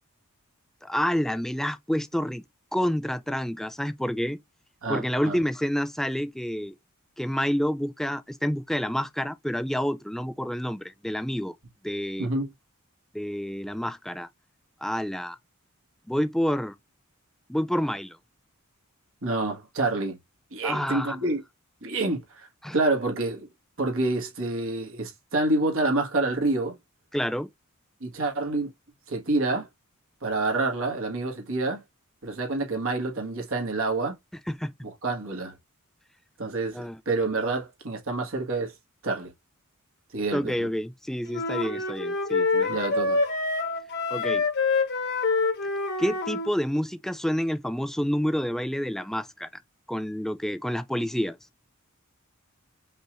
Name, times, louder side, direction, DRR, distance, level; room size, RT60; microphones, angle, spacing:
voice 1, 0.8-2.4 2.7-4.4 4.9-6.7 7.2-11.5 11.8-12.3 13.1-14.3 14.8-15.4 16.1-16.7 17.5-18.2 20.6-21.2 22.6-22.8 27.1-27.5 34.5-34.7 36.7-37.0 40.3-42.8 44.1-44.4 46.0-49.5 49.9-51.4, equal, ahead, 0.3 m, -28 dB
voice 2, 4.8-5.4 12.2-12.5 19.2-20.2 20.5-21.4 21.8-22.5 22.7-23.5 23.8-26.7 28.0-28.7 29.1-29.7 30.2-31.8 32.2-34.2 34.8-35.5 36.4-38.7 39.0-39.3 40.1-40.7 42.7-43.2, right 2 dB, 65° right, 1.6 m, -27 dB
sound 1, 41.3-46.5, left 3 dB, 50° left, 1.4 m, -26 dB
5.3 x 3.1 x 2.5 m
head